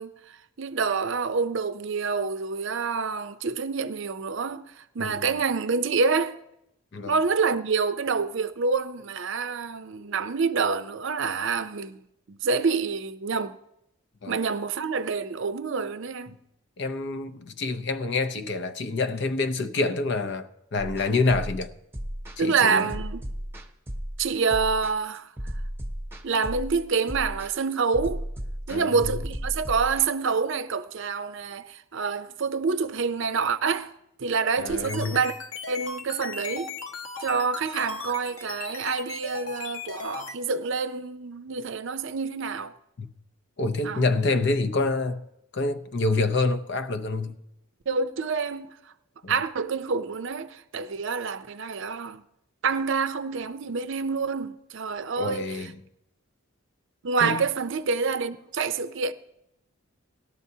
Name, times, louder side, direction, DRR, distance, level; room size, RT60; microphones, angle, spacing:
voice 1, 0.0-6.4 7.1-12.0 12.3-13.6 14.3-16.4 22.4-23.3 24.2-25.3 26.2-28.2 28.7-33.9 34.2-35.4 35.7-36.7 37.2-42.8 43.8-44.1 47.9-48.7 49.3-52.2 52.6-55.7 57.0-59.1, right 5 dB, 60° right, 0.5 m, -27 dB
voice 2, 16.8-21.7 22.4-22.9 28.7-28.9 34.6-35.2 43.0-43.1 43.6-45.2 45.5-47.4 49.2-49.3 55.2-55.7 57.2-57.4, left 3 dB, 55° left, 0.6 m, -27 dB
sound 1, 20.8-30.1, equal, 10° right, 0.8 m, -34 dB
sound 2, 34.6-40.3, left 4 dB, 80° left, 1.3 m, -37 dB
18.5 x 12.0 x 2.8 m
head